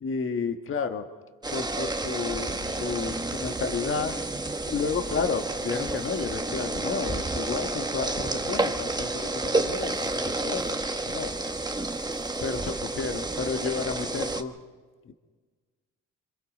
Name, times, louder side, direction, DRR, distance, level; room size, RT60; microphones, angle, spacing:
voice 1, 0.0-1.1 1.5-4.2 4.7-11.3 12.4-14.5 15.0-15.1, left 5 dB, 45° left, 7 dB, 1.5 m, -32 dB
sound 1, 1.4-14.4, right 2 dB, 15° right, 1.2 m, -30 dB
26.5 x 26.0 x 4.2 m, 1.4 s
cardioid pair, 90°, 30 cm